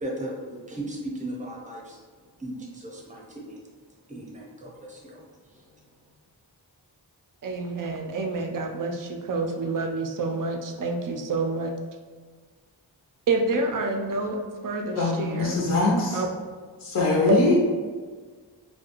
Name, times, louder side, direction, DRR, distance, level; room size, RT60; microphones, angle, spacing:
voice 1, 0.0-2.0 2.4-3.6 4.1-5.2, right 1 dB, 15° right, -3 dB, 0.7 m, -36 dB
voice 2, 7.4-11.7 13.3-15.6 16.1-16.3 17.3-17.4, right 3 dB, 50° right, 3 dB, 0.4 m, -28 dB
voice 3, 14.9-16.2 16.8-17.6, left 2 dB, 35° left, -3 dB, 0.5 m, -22 dB
2.3 x 2.2 x 2.8 m, 1.5 s
cardioid pair, 45°, 44 cm